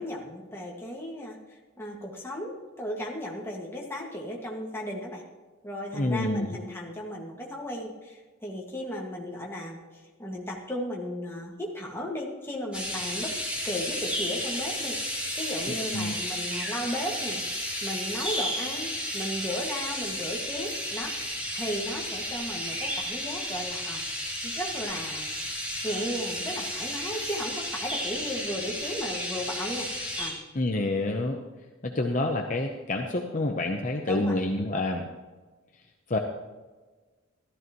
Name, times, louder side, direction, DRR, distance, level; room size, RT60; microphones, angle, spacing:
voice 1, 0.0-5.2 5.6-9.8 10.2-13.3 13.6-17.4 17.8-25.3 25.8-29.9 30.2-30.4 34.1-34.4, equal, 10° left, -2 dB, 1.8 m, -35 dB
voice 2, 5.9-6.6 15.9-16.1 30.5-31.4 31.8-35.1 36.1-36.2, left 2 dB, 40° left, 3 dB, 0.8 m, -28 dB
sound 1, 12.7-30.3, equal, 5° right, 2.7 m, -33 dB
14.0 x 13.5 x 3.1 m, 1.3 s
head